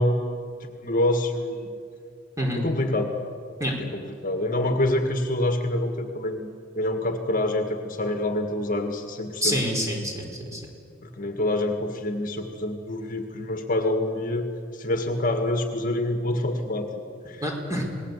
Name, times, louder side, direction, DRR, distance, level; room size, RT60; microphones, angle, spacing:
voice 1, 0.0-1.8 2.6-3.1 3.8-6.5 6.8-9.6 11.0-14.4 14.7-17.4, left 1 dB, 45° left, 5 dB, 1.8 m, -26 dB
voice 2, 9.4-10.6 17.4-17.9, equal, 15° right, 0 dB, 4.6 m, -27 dB
27.0 x 20.0 x 8.3 m, 2.3 s
head